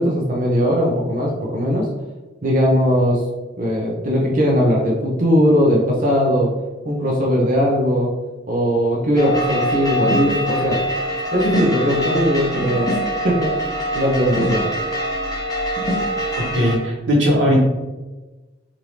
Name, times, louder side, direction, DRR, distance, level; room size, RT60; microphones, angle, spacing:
voice 1, 0.0-1.9 2.4-3.2 3.6-6.5 6.8-8.1 8.5-10.8 11.3-12.9 13.2-14.7, equal, 45° right, -3 dB, 0.6 m, -19 dB
sound 1, 9.2-16.8, equal, 20° left, 0.6 m, -24 dB
voice 2, 16.4-17.6, equal, 85° right, -4 dB, 1.0 m, -18 dB
3.2 x 2.5 x 2.9 m, 1.2 s
head